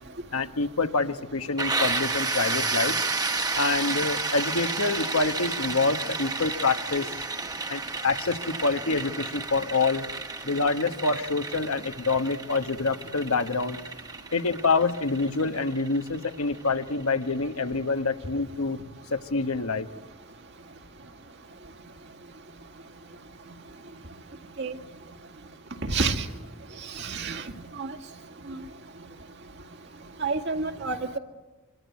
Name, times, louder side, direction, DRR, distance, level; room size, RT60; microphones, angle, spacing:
voice 1, 0.3-3.0 3.6-7.1 7.7-10.1 10.4-13.8 14.3-18.8 19.1-19.9, left 3 dB, 90° left, 8 dB, 1.3 m, -26 dB
sound 1, 1.6-17.2, right 3 dB, 20° right, 1.3 m, -31 dB
voice 2, 25.9-26.2 27.0-27.4 27.8-27.9 28.5-28.6 30.2-31.2, right 4 dB, 55° right, 5 dB, 2.1 m, -28 dB
25.0 x 24.0 x 9.4 m, 1.1 s
head